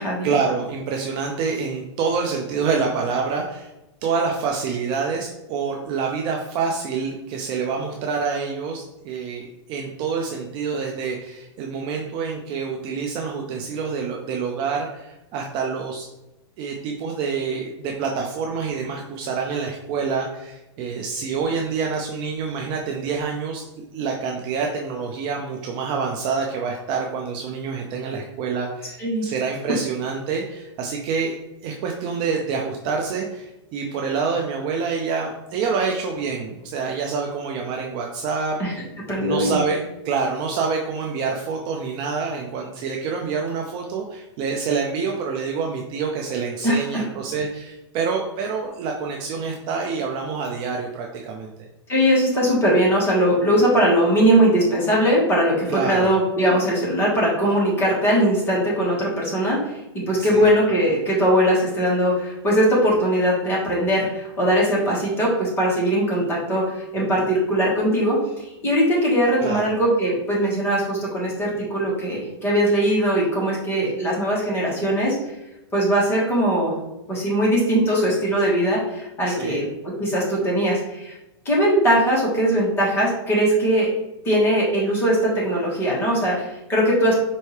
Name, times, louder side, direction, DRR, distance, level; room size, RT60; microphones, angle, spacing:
voice 1, 0.2-3.7 4.0-16.1 16.6-23.7 23.9-31.3 31.6-38.8 39.1-51.5 55.7-56.1 60.2-60.5 69.4-69.7 79.3-79.6, right 5 dB, 30° right, 1 dB, 0.4 m, -27 dB
voice 2, 39.1-39.6 46.6-47.0 51.9-75.2 75.7-76.7 77.1-81.1 81.4-83.9 84.2-87.2, equal, 15° left, -5 dB, 1.4 m, -20 dB
4.4 x 2.7 x 3.2 m, 0.94 s
hypercardioid pair, 145°, 15 cm